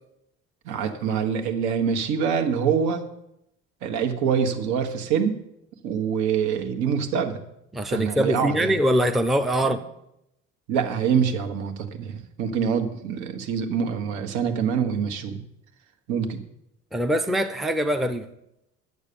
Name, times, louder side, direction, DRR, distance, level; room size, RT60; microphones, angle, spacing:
voice 1, 0.6-3.0 3.8-5.4 5.8-7.4 7.9-8.8 9.6-9.8 10.7-15.4 16.1-16.4, right 7 dB, 80° right, 5 dB, 1.5 m, -25 dB
voice 2, 7.7-9.8 16.9-18.3, equal, ahead, 8 dB, 0.5 m, -23 dB
10.5 x 8.3 x 6.9 m, 0.82 s
cardioid pair, 150°, 29 cm